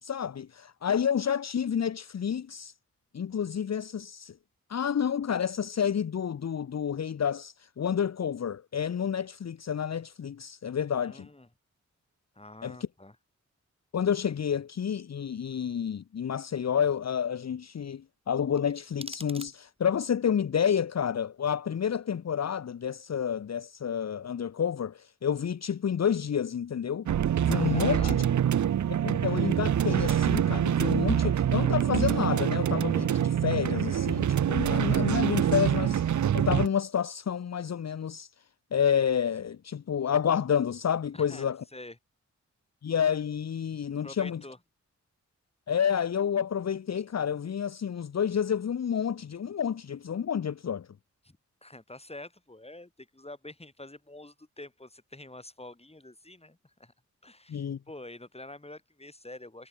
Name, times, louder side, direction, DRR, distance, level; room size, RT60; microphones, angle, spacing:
voice 1, 0.0-2.7 3.1-4.4 4.7-11.3 12.6-12.8 13.9-27.1 27.4-28.2 28.9-38.3 38.7-41.6 42.8-44.4 45.7-50.9 57.5-57.8, left 8 dB, 60° left, 0.8 m, -29 dB
voice 2, 11.0-11.5 12.4-13.2 27.7-28.4 41.1-42.0 44.0-44.6 51.2-56.9 57.2-59.7, left 2 dB, 20° left, 5.6 m, -46 dB
sound 1, 18.6-20.0, right 2 dB, 20° right, 3.9 m, -46 dB
sound 2, 27.1-36.7, right 10 dB, 70° right, 0.6 m, -25 dB
cardioid pair, 60°, 31 cm